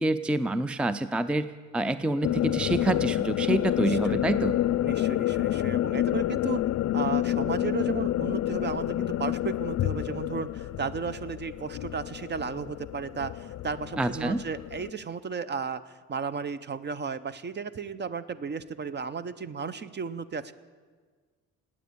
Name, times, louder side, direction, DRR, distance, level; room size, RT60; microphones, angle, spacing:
voice 1, 0.0-4.5 14.0-14.4, right 2 dB, 5° right, 14 dB, 0.5 m, -27 dB
sound 1, 2.2-14.9, left 13 dB, 60° left, 0.5 m, -29 dB
voice 2, 3.8-4.2 4.8-6.6 6.9-20.5, right 6 dB, 35° right, 16 dB, 0.8 m, -34 dB
19.0 x 8.8 x 8.6 m, 1.5 s
cardioid pair, 90°, 30 cm